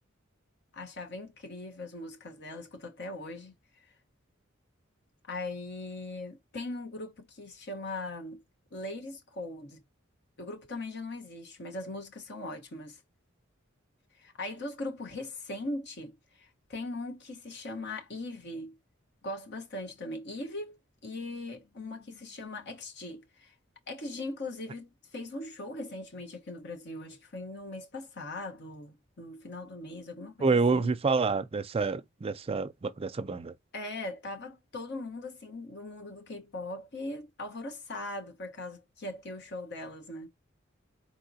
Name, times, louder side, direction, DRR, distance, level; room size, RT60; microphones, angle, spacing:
voice 1, 0.7-3.9 5.3-8.4 8.7-9.8 10.4-13.0 14.1-18.8 19.2-23.5 23.9-30.9 33.7-40.3, left 2 dB, 60° left, 1.2 m, -40 dB
voice 2, 30.4-33.5, right 4 dB, 30° right, 0.4 m, -28 dB
4.2 x 3.7 x 2.7 m
head